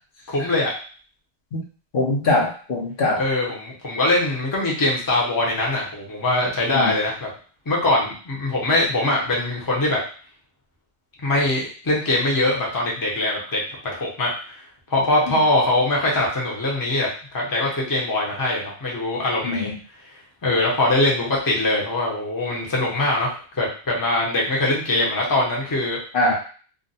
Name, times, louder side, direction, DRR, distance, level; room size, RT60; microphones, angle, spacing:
voice 1, 0.3-0.7 3.2-7.3 7.7-10.0 11.2-13.6 13.9-14.6 14.9-19.7 20.4-26.0, left 2 dB, 20° left, -3 dB, 0.7 m, -22 dB
voice 2, 1.9-3.2 6.7-6.9 19.4-19.7 26.1-26.3, left 2 dB, 60° left, -2 dB, 0.8 m, -22 dB
2.5 x 2.1 x 4.0 m, 0.41 s
omnidirectional pair, 1.1 m